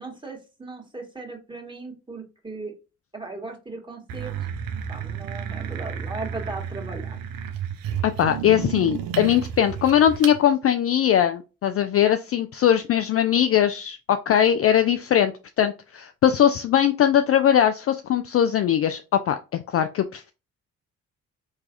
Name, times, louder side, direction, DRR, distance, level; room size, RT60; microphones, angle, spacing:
voice 1, 0.0-2.7 3.1-4.4 4.9-7.2, right 3 dB, 10° right, 1 dB, 1.6 m, -37 dB
sound 1, 4.1-10.4, right 8 dB, 60° right, 0.7 m, -32 dB
voice 2, 8.0-15.3 15.6-19.0 19.3-19.4 19.7-20.3, left 10 dB, 35° left, 9 dB, 0.4 m, -20 dB
4.6 x 3.1 x 2.5 m, 0.30 s
figure-of-eight pair, 40°, 40 cm